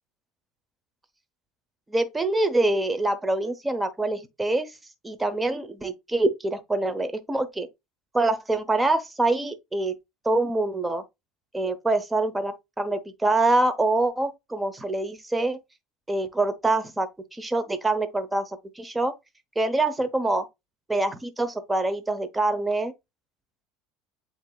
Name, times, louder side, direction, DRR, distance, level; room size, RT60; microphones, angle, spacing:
voice 1, 1.9-4.7 5.0-7.7 8.1-9.9 10.2-11.0 11.5-15.6 16.1-18.5 18.8-19.1 19.6-20.5 20.9-22.9, right 2 dB, 10° right, 0.8 m, -25 dB
7.9 x 2.8 x 2.2 m
supercardioid pair, 130°, 0 cm